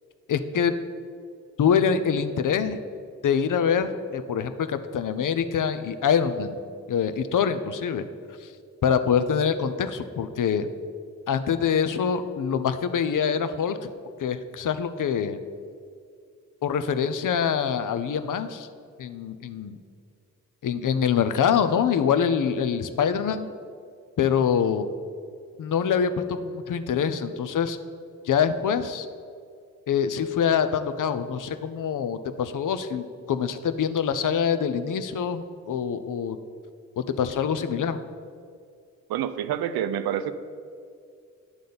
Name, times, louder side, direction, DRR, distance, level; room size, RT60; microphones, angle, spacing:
voice 1, 0.3-0.7 1.6-2.8 3.2-6.6 6.9-8.0 8.4-8.5 8.8-10.7 11.3-13.8 14.2-15.4 16.6-18.7 19.0-19.8 20.6-23.5 24.2-24.9 25.6-27.8 28.2-29.1 29.9-36.4 37.0-38.0, left 7 dB, 55° left, 11 dB, 0.7 m, -25 dB
voice 2, 39.1-40.3, right 10 dB, 75° right, 12 dB, 0.6 m, -27 dB
9.7 x 3.8 x 6.7 m, 2.3 s
supercardioid pair, 40°, 38 cm